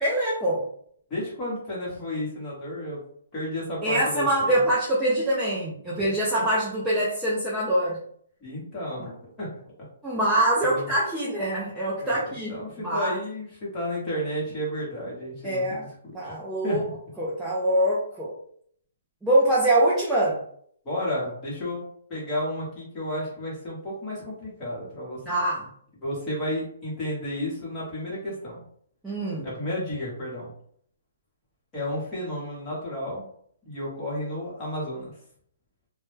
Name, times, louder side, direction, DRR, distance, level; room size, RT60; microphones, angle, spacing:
voice 1, 0.0-0.7 3.8-8.0 10.0-13.2 15.4-15.8 16.1-16.8 17.2-18.3 19.2-20.4 25.3-25.7 29.0-29.5, right 1 dB, 5° right, -8 dB, 0.3 m, -24 dB
voice 2, 1.1-3.0 3.3-4.6 8.4-9.5 10.6-10.9 12.0-16.3 16.6-16.8 20.8-25.4 26.0-28.6 29.4-30.5 31.7-33.3 33.6-35.1, left 1 dB, 15° left, -6 dB, 0.9 m, -32 dB
2.1 x 2.0 x 3.1 m, 0.63 s
hypercardioid pair, 175°, 0 cm